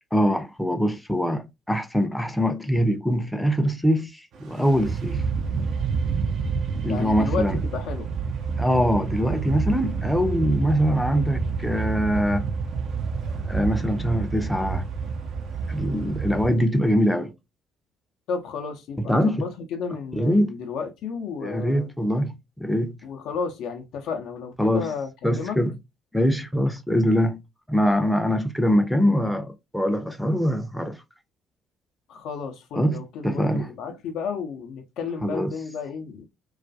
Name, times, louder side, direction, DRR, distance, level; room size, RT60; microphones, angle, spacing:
voice 1, 0.1-4.1 4.4-5.2 6.8-7.6 8.6-12.5 13.3-14.8 15.7-17.3 19.0-19.4 20.1-20.5 21.4-22.9 24.6-24.9 25.2-25.7 26.1-27.4 27.7-31.0 32.7-33.7 35.2-35.5, equal, 5° left, 0.5 m, -23 dB
sound 1, 4.3-16.5, right 5 dB, 55° right, 0.4 m, -28 dB
voice 2, 6.9-8.1 18.3-21.9 23.0-25.6 32.1-36.2, left 5 dB, 60° left, 0.4 m, -32 dB
2.3 x 2.2 x 2.5 m
figure-of-eight pair, 50°, 0 cm